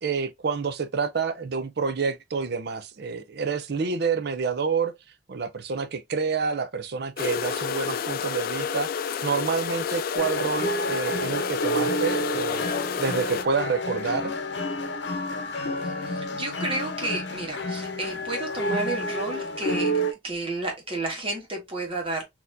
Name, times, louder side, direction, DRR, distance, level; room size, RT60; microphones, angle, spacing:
voice 1, 0.0-4.9 5.3-12.7 13.0-14.3, right 5 dB, 65° right, 0.5 m, -28 dB
sound 1, 7.2-13.4, left 7 dB, 55° left, 0.4 m, -30 dB
sound 2, 10.2-20.1, equal, 75° left, 0.8 m, -30 dB
voice 2, 15.8-22.2, right 2 dB, 30° right, 1.5 m, -32 dB
4.2 x 2.9 x 2.6 m
head